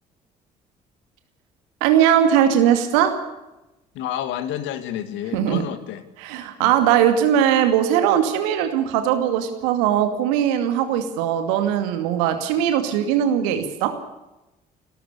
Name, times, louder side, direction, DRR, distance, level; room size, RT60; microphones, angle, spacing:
voice 1, 1.8-3.2 5.3-5.6 6.2-14.0, right 10 dB, 70° right, 8 dB, 2.4 m, -20 dB
voice 2, 3.9-6.0 6.6-6.7, left 11 dB, 65° left, 12 dB, 1.9 m, -29 dB
29.5 x 13.0 x 6.8 m, 0.99 s
figure-of-eight pair, 50°, 21 cm